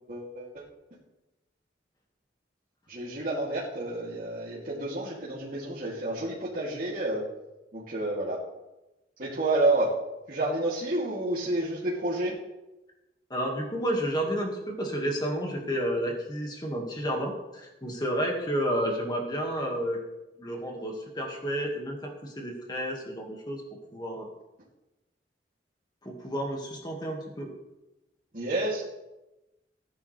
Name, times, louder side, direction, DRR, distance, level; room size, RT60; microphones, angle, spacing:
voice 1, 0.1-0.6 2.9-7.2 7.7-8.4 9.2-9.9 10.3-12.3 28.3-28.8, right 2 dB, 50° right, -9 dB, 2.7 m, -29 dB
voice 2, 13.3-20.0 20.4-23.6 23.9-24.3 26.0-27.5, equal, 20° left, 0 dB, 1.9 m, -31 dB
17.5 x 10.5 x 3.4 m, 1.0 s
head